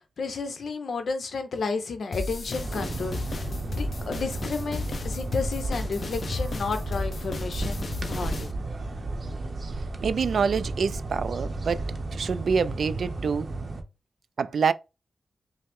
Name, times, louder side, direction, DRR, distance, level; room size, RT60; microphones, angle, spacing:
voice 1, 0.2-8.5, left 4 dB, 75° left, 0.8 m, -32 dB
sound 1, 2.1-8.5, left 3 dB, 50° left, 0.5 m, -34 dB
sound 2, 2.5-13.8, right 2 dB, 50° right, 0.6 m, -33 dB
voice 2, 10.0-13.5 14.4-14.7, right 6 dB, 75° right, 0.3 m, -26 dB
5.4 x 2.1 x 3.5 m
wide cardioid pair, 130°, 0 cm